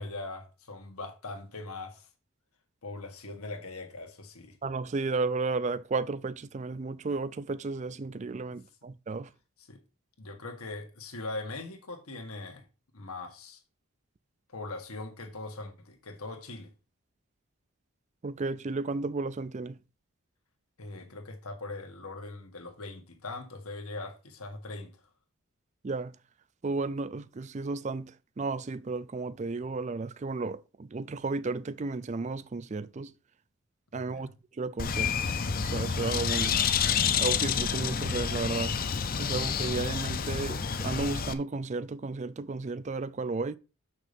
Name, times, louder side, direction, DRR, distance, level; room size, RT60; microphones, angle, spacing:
voice 1, 0.0-2.1 2.8-4.6 8.5-8.6 9.6-9.8 10.2-12.6 12.9-13.6 14.5-16.7 20.8-24.9 33.9-34.3, left 2 dB, 85° left, 1.8 m, -41 dB
voice 2, 4.6-9.3 18.2-19.8 25.8-26.1 26.6-28.1 28.4-33.1 33.9-34.3 34.6-35.1 35.6-36.6 37.2-38.7 39.2-43.6, right 3 dB, 30° right, 0.4 m, -33 dB
Bird, 34.8-41.3, left 6 dB, 40° left, 0.6 m, -29 dB
6.7 x 6.3 x 5.2 m
head